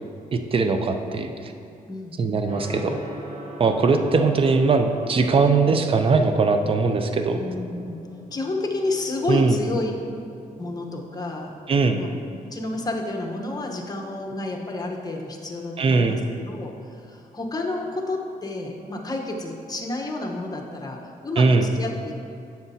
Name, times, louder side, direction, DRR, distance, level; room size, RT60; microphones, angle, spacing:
voice 1, 0.3-1.5 2.2-3.0 3.6-7.4 9.3-9.6 11.7-12.0 15.8-16.2 21.4-21.7, right 4 dB, 40° right, 6 dB, 0.5 m, -20 dB
voice 2, 1.9-2.3 7.4-8.0 8.3-9.9 10.6-11.5 11.9-12.1 12.5-16.2 16.5-22.2, left 2 dB, 25° left, 1 dB, 1.0 m, -30 dB
Gong, 2.5-21.4, right 1 dB, 80° right, 1.7 m, -44 dB
9.5 x 7.2 x 2.8 m, 2.5 s
cardioid pair, 100°, 15 cm